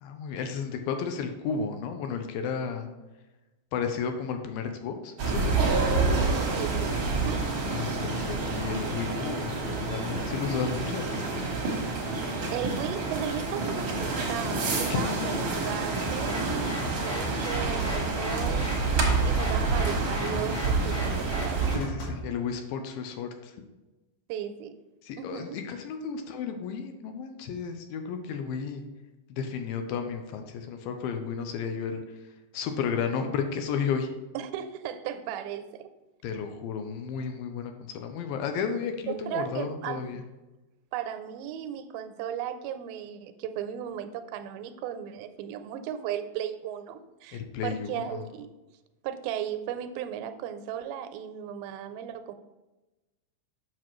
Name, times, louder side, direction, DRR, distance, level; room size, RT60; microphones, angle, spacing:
voice 1, 0.0-2.9 3.7-5.6 7.7-11.3 14.9-15.4 18.3-18.7 21.7-23.6 25.0-28.8 29.3-34.1 36.2-40.2 47.3-48.2, left 6 dB, 80° left, 6 dB, 2.4 m, -33 dB
sound 1, 5.2-21.8, right 3 dB, 65° right, 1.2 m, -28 dB
voice 2, 6.5-7.4 12.5-18.8 19.2-21.8 24.3-24.7 25.2-25.6 34.3-35.9 39.1-40.1 40.9-48.5 49.0-52.3, right 9 dB, 85° right, 9 dB, 2.4 m, -36 dB
sound 2, 16.0-22.2, left 1 dB, 60° left, 2.7 m, -36 dB
7.3 x 6.0 x 3.0 m, 1.1 s
omnidirectional pair, 4.2 m